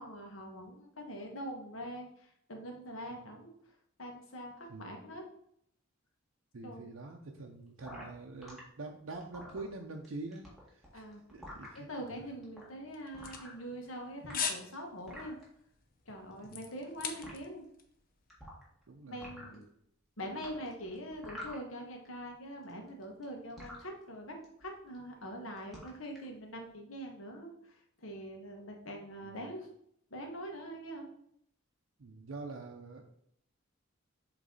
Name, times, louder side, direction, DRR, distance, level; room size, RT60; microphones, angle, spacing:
voice 1, 0.0-5.2 6.6-6.9 10.9-11.2 11.7-15.4 16.0-17.6 19.1-19.7 20.2-29.7 30.1-31.1, equal, 80° left, 2 dB, 1.4 m, -44 dB
voice 2, 6.5-11.1 11.3-11.9 16.4-16.5 18.9-19.4 29.2-29.4 32.0-33.0, right 3 dB, 75° right, 2 dB, 0.6 m, -45 dB
sound 1, 7.8-8.6 9.1-10.1 10.3-11.8 12.4-12.6 13.1-13.9 14.2-15.4 16.3-16.9 17.2-17.3 18.3-18.8 19.1-19.6 20.4-22.1 22.3-23.8 24.4-24.7 24.9-25.3 25.6-26.2, equal, ahead, 1.9 m, -48 dB
sound 2, 12.9-14.0 14.3-14.7 15.0-15.3 15.8-17.5 17.8-17.9, left 7 dB, 45° left, 0.7 m, -37 dB
7.9 x 3.2 x 4.0 m, 0.70 s
head